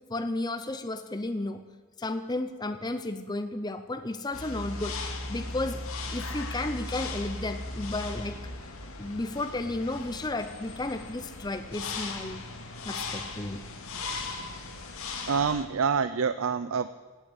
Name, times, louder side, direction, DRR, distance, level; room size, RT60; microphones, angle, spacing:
voice 1, 0.1-1.6 2.0-5.8 6.1-8.4 9.0-12.4 12.8-13.6, left 2 dB, 20° left, 8 dB, 0.6 m, -33 dB
sound 1, 4.3-15.7, left 3 dB, 80° left, 2.1 m, -37 dB
voice 2, 15.3-16.9, right 6 dB, 70° right, 14 dB, 0.5 m, -26 dB
17.0 x 9.2 x 8.1 m, 1.5 s
head